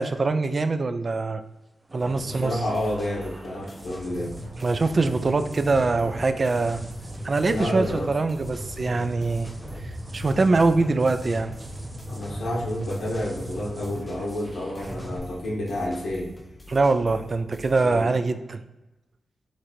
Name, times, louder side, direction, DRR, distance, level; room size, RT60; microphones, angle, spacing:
voice 1, 0.0-1.4 1.9-2.5 4.6-6.8 7.2-9.5 10.1-11.5 16.7-18.6, right 3 dB, 45° right, 10 dB, 0.4 m, -23 dB
sound 1, 1.9-15.2, right 1 dB, 25° right, 0.9 m, -38 dB
voice 2, 2.3-4.4 7.4-8.1 12.1-16.3 17.8-18.2, left 1 dB, 85° left, -4 dB, 1.0 m, -30 dB
sound 2, 2.4-18.0, left 2 dB, 15° left, 0.7 m, -47 dB
4.5 x 2.6 x 4.2 m, 1.0 s
cardioid pair, 75°, 0 cm